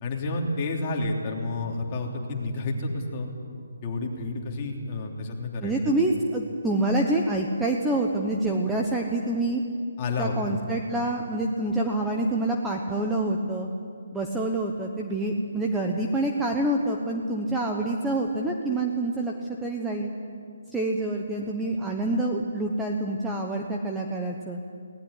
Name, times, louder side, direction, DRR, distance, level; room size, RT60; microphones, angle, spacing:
voice 1, 0.0-3.3 3.8-5.9 10.0-10.6, left 2 dB, 25° left, -1 dB, 3.2 m, -30 dB
voice 2, 5.6-9.6 10.2-13.7 14.1-19.3 19.6-20.1 20.7-24.6, right 2 dB, 5° right, 0 dB, 1.0 m, -27 dB
22.0 x 18.5 x 9.8 m, 2.3 s
hypercardioid pair, 170°, 0 cm